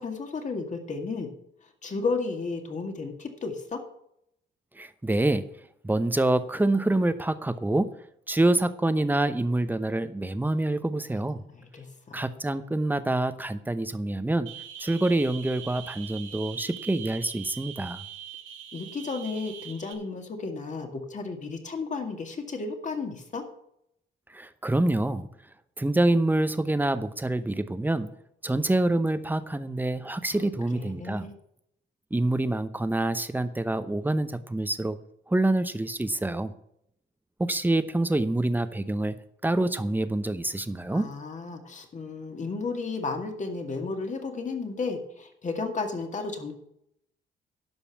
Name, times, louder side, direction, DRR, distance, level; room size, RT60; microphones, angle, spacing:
voice 1, 0.0-1.3 1.8-3.8 11.1-11.2 11.5-12.3 18.7-23.4 30.3-31.3 40.9-46.5, left 4 dB, 40° left, 5 dB, 2.1 m, -33 dB
voice 2, 4.8-5.5 5.8-7.9 8.3-11.4 12.1-14.5 14.8-18.0 24.3-25.3 25.8-28.1 28.4-31.3 32.1-35.0 35.3-36.5 37.4-39.2 39.4-41.1, right 2 dB, 10° right, 12 dB, 0.8 m, -26 dB
sound 1, 14.5-19.9, right 10 dB, 80° right, 1.9 m, -42 dB
11.5 x 5.4 x 7.0 m, 0.76 s
cardioid pair, 90°, 20 cm